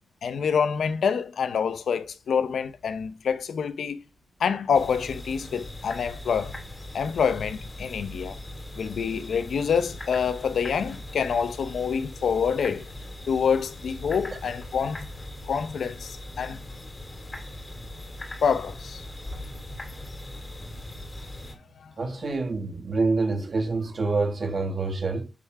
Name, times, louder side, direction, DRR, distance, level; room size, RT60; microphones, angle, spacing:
voice 1, 0.2-4.0 4.4-6.5 6.9-8.4 8.8-12.9 13.3-15.1 15.5-16.6 18.4-19.0 21.8-21.9, left 6 dB, 80° left, 0.7 m, -26 dB
sound 1, 4.7-21.5, left 1 dB, 30° left, 2.5 m, -40 dB
voice 2, 22.0-25.3, right 3 dB, 50° right, 2.2 m, -26 dB
8.3 x 3.6 x 4.7 m
cardioid pair, 70°, 0 cm